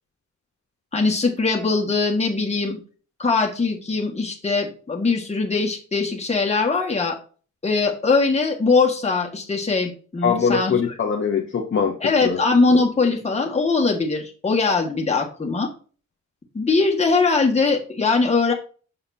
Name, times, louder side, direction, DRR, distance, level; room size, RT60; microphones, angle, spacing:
voice 1, 0.9-2.8 3.2-7.2 7.6-10.7 12.0-15.7 16.5-18.5, left 4 dB, 20° left, 0 dB, 1.6 m, -21 dB
voice 2, 10.2-12.4, left 6 dB, 40° left, 2 dB, 0.9 m, -22 dB
7.1 x 6.6 x 2.7 m, 0.39 s
wide cardioid pair, 165°, 31 cm